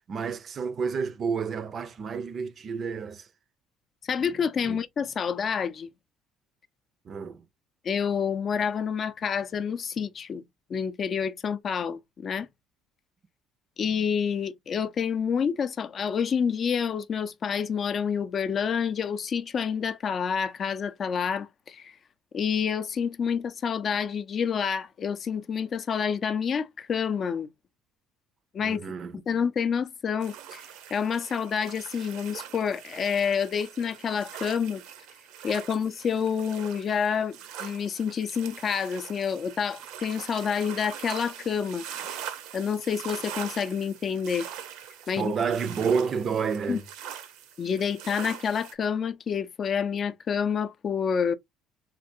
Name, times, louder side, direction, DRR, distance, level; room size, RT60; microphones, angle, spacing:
voice 1, 0.1-3.3 4.7-4.8 7.1-7.4 28.6-29.2 45.2-46.8, right 6 dB, 40° right, 0.5 m, -29 dB
voice 2, 4.1-5.9 7.8-10.4 10.7-12.5 13.8-21.9 22.3-27.5 28.5-28.8 29.3-30.6 30.9-34.8 35.4-41.8 42.5-44.5 45.1-45.3 46.7-46.8 47.6-51.3, left 7 dB, 40° left, 0.4 m, -28 dB
sound 1, 30.2-48.7, right 9 dB, 80° right, 0.7 m, -42 dB
3.3 x 2.5 x 2.6 m
cardioid pair, 120°, 0 cm